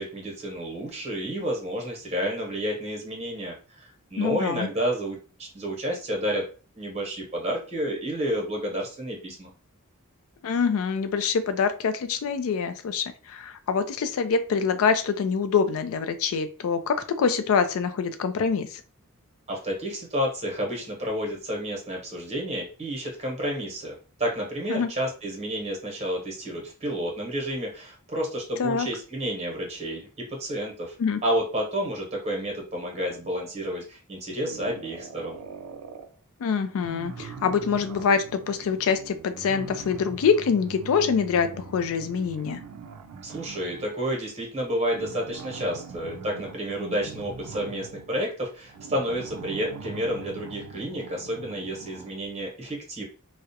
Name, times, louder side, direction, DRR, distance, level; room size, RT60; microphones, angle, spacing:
voice 1, 0.0-6.5 6.8-9.5 19.5-30.9 31.2-35.4 43.2-53.0, equal, 30° right, -1 dB, 0.9 m, -30 dB
voice 2, 4.2-4.7 10.4-18.8 24.7-24.9 28.6-28.9 31.0-31.2 36.4-42.6, left 6 dB, 70° left, 10 dB, 0.3 m, -25 dB
sound 1, 34.4-36.1 36.8-43.9 44.9-52.3, right 5 dB, 80° right, 0.3 m, -42 dB
2.3 x 2.0 x 2.7 m, 0.37 s
head